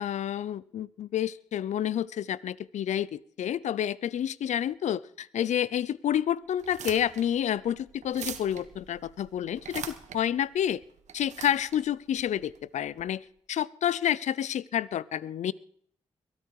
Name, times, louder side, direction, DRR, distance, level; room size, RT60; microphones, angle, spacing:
voice 1, 0.0-10.8 11.1-15.5, left 10 dB, 75° left, 20 dB, 0.6 m, -29 dB
sound 1, 6.5-13.0, right 8 dB, 75° right, 1.4 m, -43 dB
22.5 x 12.5 x 4.8 m, 0.66 s
supercardioid pair, 50°, 12 cm